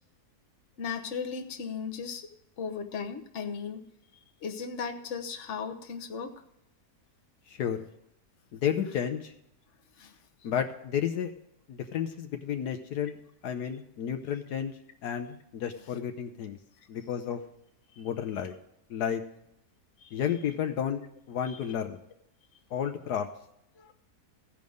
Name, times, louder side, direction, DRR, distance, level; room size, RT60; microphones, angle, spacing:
voice 1, 0.8-2.2 2.6-3.8 4.4-6.4 10.0-10.1 17.9-18.0 20.0-20.1 21.5-21.6 23.8-23.9, left 6 dB, 50° left, 4 dB, 1.3 m, -36 dB
voice 2, 8.5-9.3 10.4-11.3 11.7-13.2 13.4-14.7 15.0-16.6 16.9-17.4 18.0-18.5 18.9-19.2 20.1-21.0 21.3-22.0 22.7-23.3, left 8 dB, 75° left, 6 dB, 1.3 m, -31 dB
16.0 x 5.3 x 6.4 m, 0.78 s
omnidirectional pair, 1.7 m